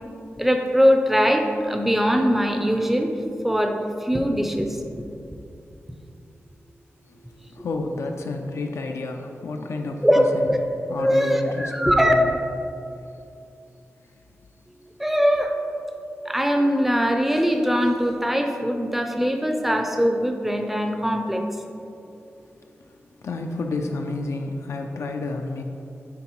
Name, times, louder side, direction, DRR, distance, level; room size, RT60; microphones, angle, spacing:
voice 1, 0.4-3.1 3.4-5.0 10.0-10.6 11.0-12.1 15.0-15.5 16.3-21.4, equal, 5° right, 4 dB, 0.4 m, -21 dB
voice 2, 7.5-10.5 10.9-12.4 14.1-14.2 22.8-22.9 23.2-25.6, left 3 dB, 75° left, 3 dB, 0.4 m, -30 dB
9.4 x 3.7 x 3.0 m, 2.7 s
wide cardioid pair, 155°, 5 cm